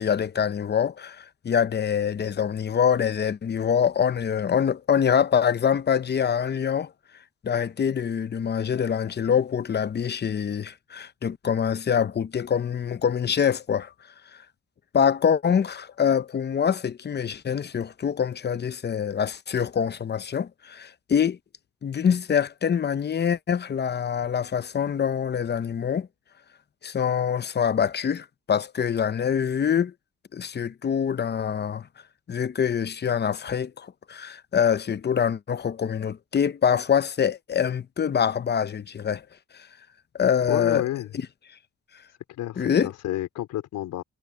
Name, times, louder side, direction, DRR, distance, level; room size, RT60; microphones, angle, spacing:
voice 1, 0.0-6.9 7.4-13.9 14.9-21.4 21.8-26.1 26.8-29.9 30.3-31.9 32.3-39.2 39.5-39.7 40.1-40.8 42.6-42.9, left 7 dB, 35° left, 0.8 m, -25 dB
voice 2, 40.5-41.1 42.3-44.0, left 13 dB, 85° left, 4.5 m, -30 dB
cardioid pair, 90°, 30 cm